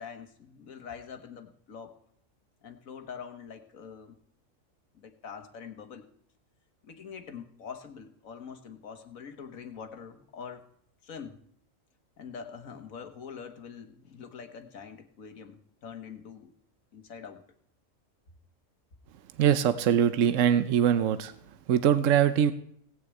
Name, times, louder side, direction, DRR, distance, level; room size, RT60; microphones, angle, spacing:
voice 1, 0.0-1.9 2.6-4.2 4.9-6.1 6.8-10.6 11.0-11.4 12.2-16.5 16.9-17.4, left 6 dB, 85° left, 7 dB, 1.8 m, -44 dB
voice 2, 19.4-21.3 21.7-22.5, right 9 dB, 75° right, 12 dB, 1.1 m, -22 dB
17.5 x 6.5 x 8.4 m, 0.67 s
omnidirectional pair, 1.4 m